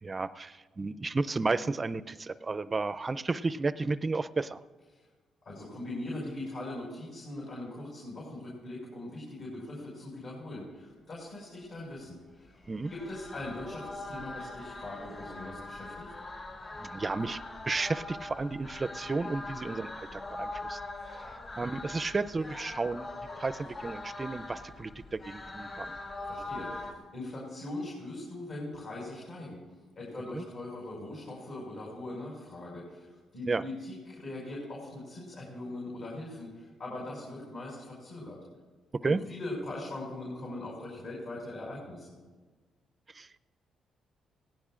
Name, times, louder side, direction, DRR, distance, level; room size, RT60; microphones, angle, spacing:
voice 1, 0.0-4.6 12.7-12.9 16.8-17.4 17.7-20.8 21.1-21.2 21.6-26.0 30.3-30.4 33.5-33.6 38.9-39.2 43.1-43.3, right 3 dB, 30° right, 14 dB, 0.4 m, -33 dB
voice 2, 5.4-12.6 12.9-16.1 26.2-29.6 30.0-38.4 39.0-42.2, left 2 dB, 55° left, -4 dB, 5.3 m, -41 dB
sound 1, 12.6-26.9, left 2 dB, 35° left, 2.6 m, -42 dB
18.5 x 16.5 x 2.5 m, 1.4 s
cardioid pair, 90°, 0 cm